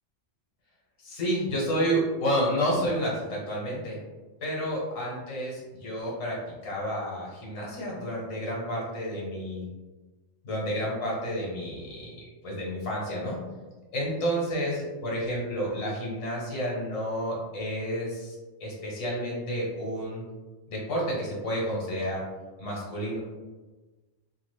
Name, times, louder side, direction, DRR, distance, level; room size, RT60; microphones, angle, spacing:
voice 1, 1.0-4.0 4.4-6.4 6.6-9.6 10.4-13.4 13.9-18.3 18.6-20.2 20.7-22.2 22.6-23.2, equal, 70° left, -4 dB, 1.4 m, -30 dB
2.8 x 2.4 x 3.2 m, 1.2 s
omnidirectional pair, 1.4 m